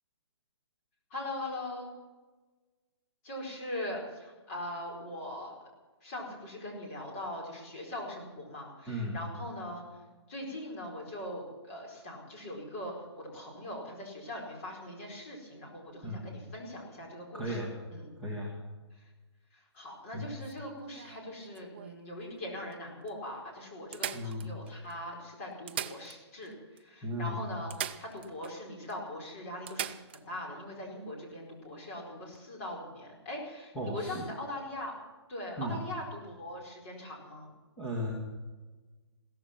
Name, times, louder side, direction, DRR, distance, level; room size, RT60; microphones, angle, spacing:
voice 1, 1.1-1.9 3.2-5.6 6.0-10.0 10.3-18.1 18.9-19.1 19.5-34.9 35.3-37.5, left 1 dB, 30° left, -1 dB, 4.6 m, -41 dB
voice 2, 17.3-17.7 18.2-18.5 20.1-20.3 24.1-24.5 27.0-27.4 33.7-34.2 35.6-35.8 37.8-38.1, equal, 5° left, -6 dB, 2.1 m, -35 dB
sound 1, 20.4-22.0 22.7-22.8 23.1-23.2 23.9-24.9 25.5-26.5 26.8-26.9 27.7-28.6 28.9-29.0 29.7-30.2 32.2-32.4, right 10 dB, 25° right, 0.4 m, -40 dB
16.5 x 14.0 x 5.9 m, 1.3 s
hypercardioid pair, 170°, 15 cm